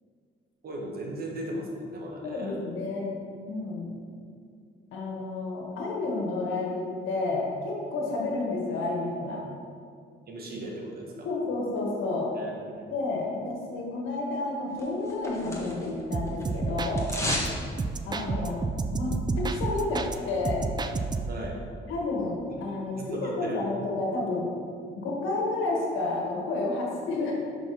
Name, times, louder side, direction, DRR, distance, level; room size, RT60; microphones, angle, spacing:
voice 1, 0.6-2.6 10.3-11.3 12.4-12.8 17.4-17.6 21.3-21.6 22.9-23.6, right 1 dB, 50° right, -1 dB, 1.6 m, -37 dB
voice 2, 2.2-3.1 3.5-4.0 4.9-9.4 11.3-12.3 12.9-17.1 18.0-18.6 18.9-20.6 21.9-24.5 25.0-27.3, left 2 dB, 85° left, -2 dB, 1.6 m, -30 dB
sound 1, 14.8-16.0 16.3-17.6 17.9-18.0, left 1 dB, 15° left, 1.5 m, -32 dB
sound 2, 16.1-17.5 17.8-20.2 20.4-21.5, right 3 dB, 20° right, 0.4 m, -31 dB
5.7 x 5.1 x 5.6 m, 2.2 s
cardioid pair, 90°, 20 cm